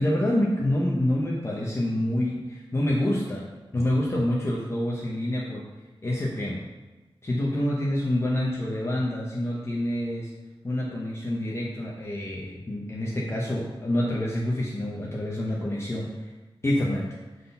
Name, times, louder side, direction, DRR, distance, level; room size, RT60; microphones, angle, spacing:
voice 1, 0.0-3.5 3.7-5.6 6.0-6.6 7.2-10.3 10.6-16.3 16.6-17.1, left 1 dB, 30° left, -4 dB, 0.9 m, -27 dB
6.3 x 4.0 x 5.5 m, 1.2 s
wide cardioid pair, 110°, 9 cm